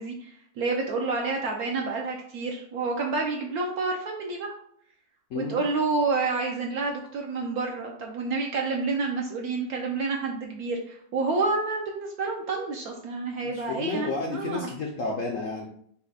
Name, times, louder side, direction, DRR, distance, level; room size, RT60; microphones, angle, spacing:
voice 1, 0.0-4.5 5.3-14.7, right 3 dB, 65° right, 1 dB, 1.0 m, -29 dB
voice 2, 5.3-5.6 13.4-15.7, left 3 dB, 65° left, 0 dB, 0.8 m, -31 dB
5.6 x 2.2 x 4.0 m, 0.66 s
omnidirectional pair, 2.0 m